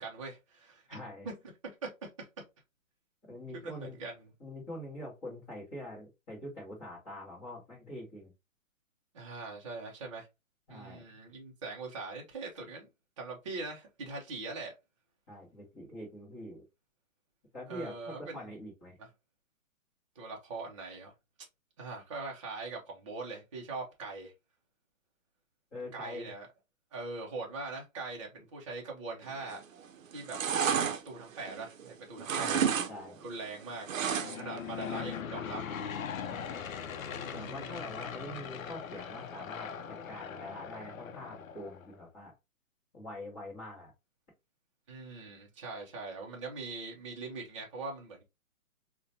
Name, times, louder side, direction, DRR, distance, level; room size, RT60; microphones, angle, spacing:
voice 1, 0.0-1.0 1.2-1.3 1.8-2.3 3.5-4.3 9.1-10.3 10.7-12.9 13.2-14.7 17.7-18.5 19.0-19.1 20.2-21.1 21.8-24.3 25.9-26.5 26.9-29.6 30.1-30.4 30.7-33.9 34.2-35.6 37.3-37.8 44.9-48.2, right 3 dB, 25° right, 0.5 m, -42 dB
voice 2, 0.9-1.3 3.3-4.0 4.4-8.3 10.7-11.0 15.3-16.6 17.5-19.0 25.7-26.3 32.3-33.3 36.3-36.5 37.3-42.3 42.9-43.9, left 1 dB, 15° left, 0.8 m, -44 dB
sound 1, 29.4-29.8 30.1-31.9 32.2-32.9 33.2-34.6 34.9-35.0, right 7 dB, 70° right, 0.6 m, -31 dB
Aircraft / Engine, 34.0-41.9, left 7 dB, 75° left, 0.5 m, -40 dB
3.7 x 2.2 x 2.7 m
hypercardioid pair, 155°, 41 cm